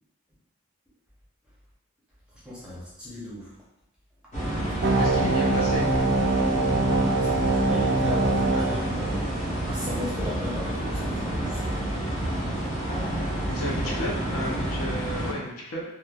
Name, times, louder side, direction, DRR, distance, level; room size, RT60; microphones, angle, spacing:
voice 1, 2.5-3.5 4.9-5.1 7.1-7.3 7.7-9.3 9.6-11.7, left 1 dB, 5° right, -8 dB, 0.6 m, -36 dB
sound 1, 4.3-15.3, right 1 dB, 35° left, 0.7 m, -29 dB
sound 2, 4.8-9.8, right 2 dB, 50° right, 0.3 m, -24 dB
voice 2, 5.0-5.9 13.5-15.8, left 1 dB, 75° left, -2 dB, 0.6 m, -32 dB
3.0 x 2.1 x 2.3 m, 0.93 s
head